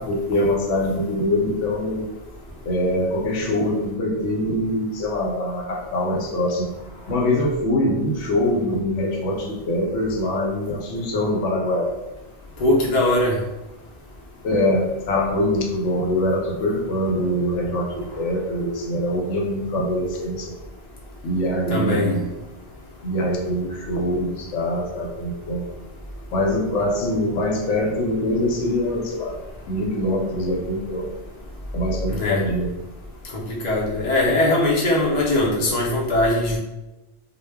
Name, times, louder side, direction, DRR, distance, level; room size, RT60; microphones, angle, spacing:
voice 1, 0.0-2.1 2.7-6.7 7.1-11.9 14.4-20.5 21.2-22.3 23.0-25.6 26.3-29.4 29.7-31.1 31.7-32.7, left 1 dB, 80° left, 0 dB, 0.9 m, -23 dB
voice 2, 12.6-13.4 21.7-22.1 32.1-32.4 33.5-36.6, left 1 dB, 45° left, -4 dB, 0.6 m, -20 dB
2.1 x 2.1 x 3.4 m, 1.0 s
omnidirectional pair, 1.2 m